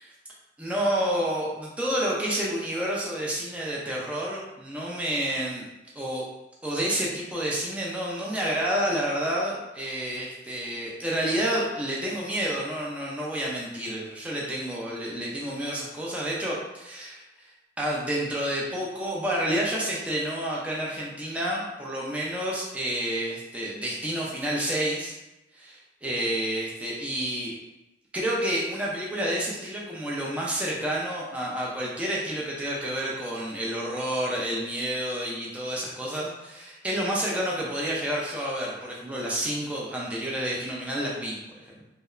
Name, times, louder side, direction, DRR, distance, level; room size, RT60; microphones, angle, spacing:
voice 1, 0.6-5.7 6.0-6.2 6.6-25.1 25.5-27.5 28.1-41.4 41.7-41.8, right 1 dB, 5° right, -5 dB, 0.3 m, -29 dB
2.8 x 2.1 x 2.3 m, 0.98 s
head